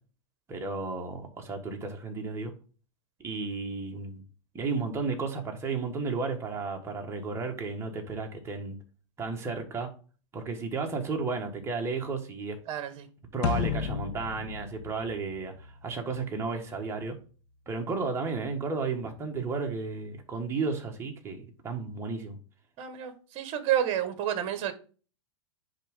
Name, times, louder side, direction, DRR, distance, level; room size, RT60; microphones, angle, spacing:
voice 1, 0.5-2.5 3.2-4.2 4.5-8.8 9.2-9.9 10.3-12.6 13.3-17.2 17.7-22.4, right 4 dB, 15° right, 1.4 m, -33 dB
voice 2, 12.7-13.1 22.8-24.7, right 10 dB, 35° right, 1.4 m, -30 dB
sound 1, 13.4-15.9, left 8 dB, 50° left, 0.9 m, -32 dB
10.0 x 3.7 x 3.6 m
hypercardioid pair, 140°, 16 cm